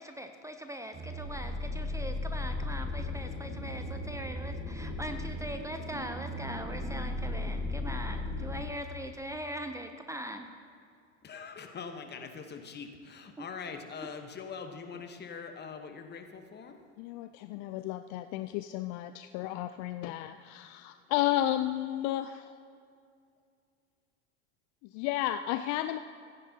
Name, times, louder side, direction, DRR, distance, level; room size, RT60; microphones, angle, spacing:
voice 1, 0.0-10.5 13.4-13.5, right 1 dB, 10° right, 6 dB, 0.6 m, -41 dB
sound 1, 0.9-8.7, left 2 dB, 25° right, 1.4 m, -36 dB
voice 2, 11.2-16.8, left 5 dB, 30° left, 6 dB, 1.1 m, -43 dB
voice 3, 17.0-22.5 24.9-26.0, left 13 dB, 50° left, 10 dB, 0.4 m, -32 dB
16.0 x 9.9 x 2.8 m, 2.3 s
hypercardioid pair, 85°, 36 cm